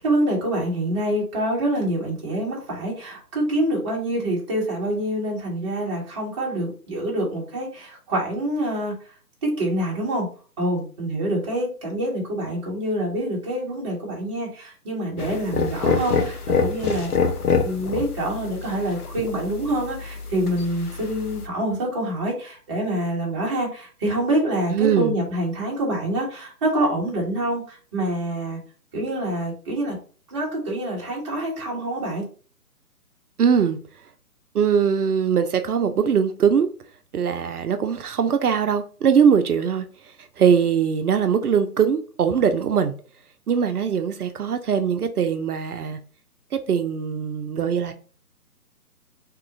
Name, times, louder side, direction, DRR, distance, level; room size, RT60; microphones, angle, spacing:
voice 1, 0.0-8.9 9.4-10.3 10.6-17.1 17.6-28.6 28.9-30.0 30.3-32.2, right 1 dB, 20° right, 0.9 m, -26 dB
sound 1, 15.2-21.5, left 5 dB, 75° left, 0.8 m, -26 dB
voice 2, 24.7-25.1 33.4-33.8 34.5-36.7 37.1-39.9 40.4-42.9 43.5-46.0 46.5-47.9, right 7 dB, 75° right, 0.5 m, -21 dB
2.9 x 2.3 x 3.7 m
figure-of-eight pair, 140°, 46 cm